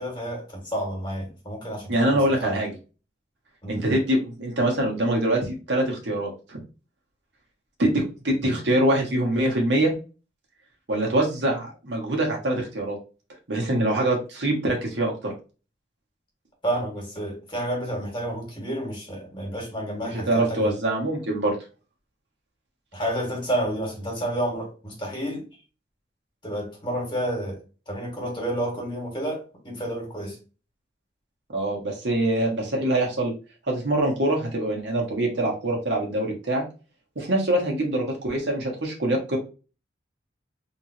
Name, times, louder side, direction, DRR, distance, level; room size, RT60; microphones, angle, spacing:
voice 1, 0.0-2.6 3.6-3.8 16.6-20.7 22.9-25.5 26.4-27.6 27.9-30.4, right 1 dB, 25° left, 1.9 m, -30 dB
voice 2, 1.9-2.7 3.7-6.6 7.8-9.9 10.9-13.0 13.5-15.3 20.1-21.6 31.5-33.3 33.7-36.6 37.1-39.4, right 1 dB, 85° right, 1.4 m, -24 dB
3.6 x 3.1 x 2.9 m
head